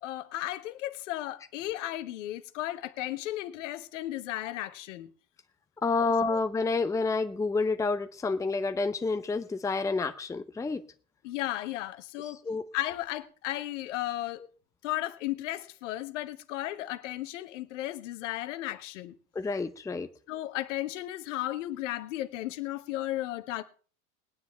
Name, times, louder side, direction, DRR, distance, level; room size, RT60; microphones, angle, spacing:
voice 1, 0.0-5.1 6.0-6.4 11.2-12.4 12.7-14.4 14.8-19.2 20.3-23.6, left 15 dB, 55° left, 1.4 m, -35 dB
voice 2, 5.8-10.8 12.5-12.7 19.3-20.1, left 4 dB, 5° left, 0.8 m, -29 dB
21.0 x 9.5 x 3.4 m
figure-of-eight pair, 90°, 43 cm